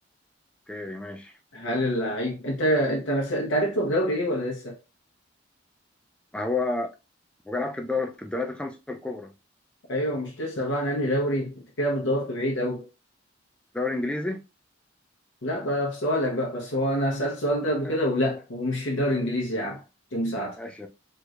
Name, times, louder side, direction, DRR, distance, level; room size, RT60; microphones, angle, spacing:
voice 1, 0.7-1.3 6.3-6.9 7.5-9.3 13.7-14.4 17.8-18.0 20.6-20.9, left 3 dB, 5° left, 0.4 m, -30 dB
voice 2, 1.5-4.8 9.9-12.9 15.4-19.8 20.1-20.6, equal, 85° left, 0.8 m, -26 dB
3.1 x 3.0 x 2.4 m
head